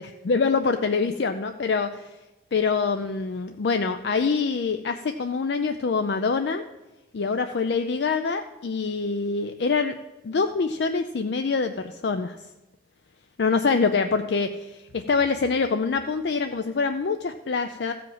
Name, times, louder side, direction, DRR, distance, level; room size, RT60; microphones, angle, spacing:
voice 1, 0.0-2.1 2.5-6.6 7.1-9.9 10.2-12.4 13.4-17.9, left 4 dB, 70° left, 8 dB, 0.5 m, -25 dB
14.5 x 5.1 x 7.3 m, 1.0 s
head